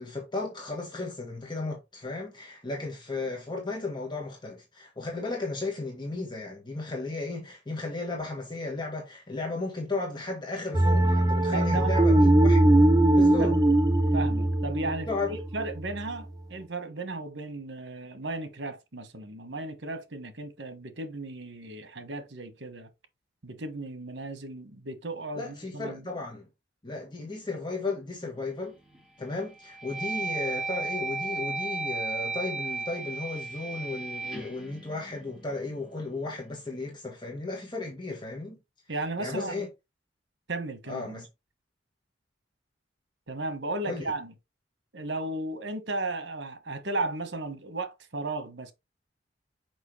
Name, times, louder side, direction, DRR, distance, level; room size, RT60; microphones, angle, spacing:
voice 1, 0.0-12.7 13.2-13.6 15.1-15.3 25.4-26.5 26.8-28.8 29.2-38.6 39.2-39.7 40.9-41.3 43.8-44.1, left 3 dB, 25° left, 1.6 m, -35 dB
sound 1, 10.7-16.0, right 1 dB, 20° right, 0.7 m, -21 dB
voice 2, 11.5-12.0 13.4-13.5 14.1-22.9 23.4-26.1 38.9-39.6 40.5-41.2 43.3-44.3 44.9-48.7, right 2 dB, 70° right, 1.4 m, -35 dB
sound 2, 28.6-29.0 29.5-35.7, right 3 dB, 5° right, 2.4 m, -35 dB
6.1 x 5.3 x 3.3 m
head